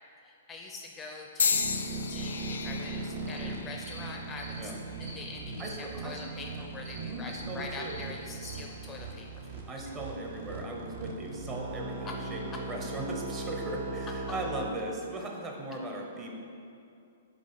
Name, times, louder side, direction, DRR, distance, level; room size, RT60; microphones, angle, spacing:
voice 1, 0.2-4.7 5.0-9.7 12.1-12.2 12.5-12.6, left 3 dB, 20° left, 1 dB, 0.4 m, -44 dB
sound 1, 1.4-5.5 6.2-6.7 7.6-7.8, left 6 dB, 85° left, 0.3 m, -34 dB
sound 2, 1.5-14.7, right 3 dB, 60° right, 0.8 m, -39 dB
sound 3, 3.2-3.4 3.9-4.0 4.3-4.6 5.0-5.1 5.6-5.7 6.1-6.3 6.8-7.0 7.3-7.4 7.8-8.0 8.4-8.6, right 1 dB, 85° right, 1.2 m, -47 dB
voice 2, 5.6-6.2 7.0-8.0 9.7-16.3, right 1 dB, 25° right, 0 dB, 1.0 m, -38 dB
5.1 x 3.8 x 5.3 m, 2.6 s
hypercardioid pair, 125°, 0 cm